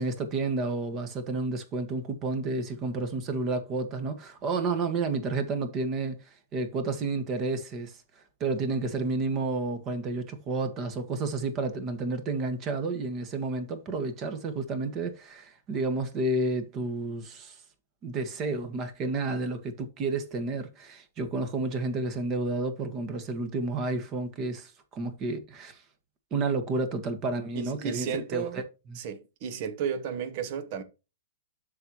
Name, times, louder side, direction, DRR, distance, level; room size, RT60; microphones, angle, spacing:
voice 1, 0.0-8.0 8.4-17.6 18.0-25.8 26.3-28.6 28.9-29.0, right 3 dB, 30° right, 1.7 m, -31 dB
voice 2, 27.5-28.6 28.9-30.8, right 7 dB, 50° right, 1.3 m, -33 dB
12.5 x 4.3 x 3.0 m
hypercardioid pair, 115°, 0 cm